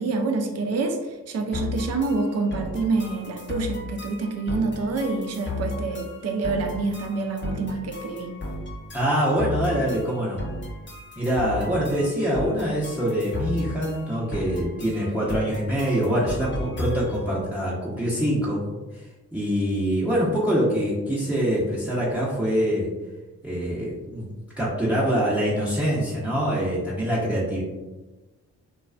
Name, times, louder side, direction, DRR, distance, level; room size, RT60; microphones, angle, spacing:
voice 1, 0.0-8.3, right 3 dB, 45° right, 4 dB, 0.5 m, -27 dB
sound 1, 1.5-17.3, left 2 dB, 30° left, 0.7 m, -35 dB
voice 2, 8.9-10.4 11.2-18.6 18.9-19.0 19.3-22.9 23.4-24.3 24.6-27.6, equal, 5° right, -6 dB, 0.7 m, -24 dB
2.3 x 2.3 x 2.3 m, 1.2 s
supercardioid pair, 45°, 36 cm